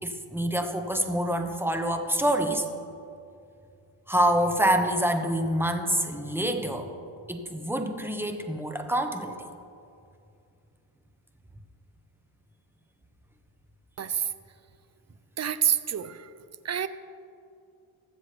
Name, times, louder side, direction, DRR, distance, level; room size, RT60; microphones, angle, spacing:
voice 1, 0.0-2.7 4.1-6.9 7.3-9.5, right 1 dB, 5° right, 5 dB, 1.1 m, -26 dB
voice 2, 14.0-14.3 15.4-16.3 16.6-16.9, right 8 dB, 35° right, 13 dB, 0.6 m, -27 dB
21.0 x 7.3 x 3.4 m, 2.5 s
cardioid pair, 75°, 45 cm